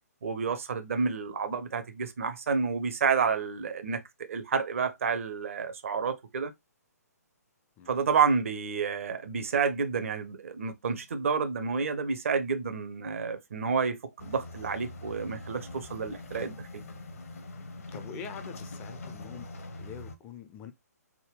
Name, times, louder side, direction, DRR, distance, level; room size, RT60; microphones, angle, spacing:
voice 1, 0.2-4.0 4.3-6.5 7.9-16.7, right 5 dB, 50° right, 0.6 m, -29 dB
sound 1, 14.2-20.2, left 2 dB, 55° left, 0.7 m, -43 dB
voice 2, 17.9-19.5 19.8-20.7, left 7 dB, 15° left, 0.3 m, -44 dB
3.5 x 2.2 x 3.2 m
figure-of-eight pair, 130°, 9 cm